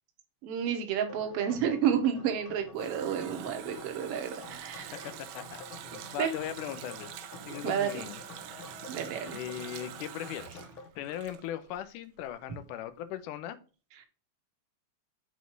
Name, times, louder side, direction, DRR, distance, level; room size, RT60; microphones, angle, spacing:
voice 1, 0.4-4.9 6.2-6.3 7.6-8.0 8.9-9.4, right 8 dB, 60° right, 5 dB, 1.8 m, -30 dB
sound 1, 1.1-10.9, left 4 dB, 55° left, 1.5 m, -49 dB
Water tap faucet, 2.3-11.9 12.2-12.3, right 11 dB, 85° right, 2.3 m, -46 dB
voice 2, 5.0-7.1 7.5-8.2 9.3-10.6 11.0-13.6, left 11 dB, 90° left, 12 dB, 2.2 m, -39 dB
7.4 x 4.1 x 4.5 m, 0.35 s
omnidirectional pair, 3.6 m